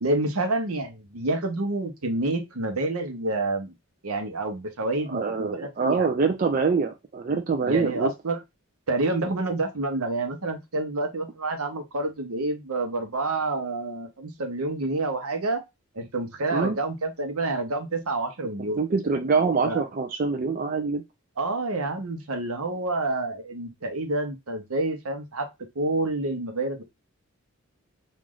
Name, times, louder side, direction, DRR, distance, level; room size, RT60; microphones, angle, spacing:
voice 1, 0.0-3.7 4.0-6.1 7.7-8.4 8.9-15.6 15.9-18.8 19.6-19.8 21.4-25.5 25.7-26.8, right 2 dB, 75° right, 6 dB, 0.9 m, -28 dB
voice 2, 5.1-8.1 16.5-16.8 18.6-21.0, right 4 dB, 40° right, 5 dB, 0.4 m, -25 dB
3.1 x 2.5 x 3.7 m, 0.21 s
head